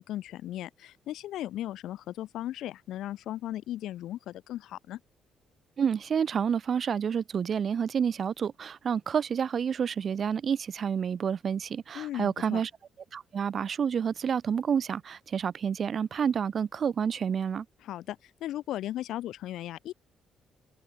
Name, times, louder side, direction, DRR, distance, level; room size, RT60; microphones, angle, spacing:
voice 1, 0.0-5.0 11.9-12.6 17.8-19.9, left 13 dB, 80° left, 1.0 m, -37 dB
voice 2, 5.8-12.7 13.1-17.7, right 7 dB, 50° right, 0.4 m, -29 dB
open air
cardioid pair, 90°, 0 cm